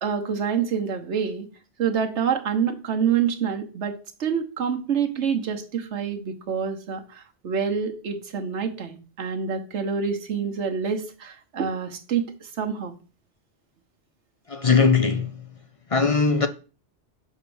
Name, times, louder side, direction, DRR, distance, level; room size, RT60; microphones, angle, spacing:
voice 1, 0.0-1.5 1.8-12.9, right 7 dB, 70° right, 1.4 m, -27 dB
voice 2, 14.5-15.3 15.9-16.5, left 5 dB, 35° left, 0.6 m, -19 dB
6.5 x 5.0 x 7.0 m
omnidirectional pair, 1.2 m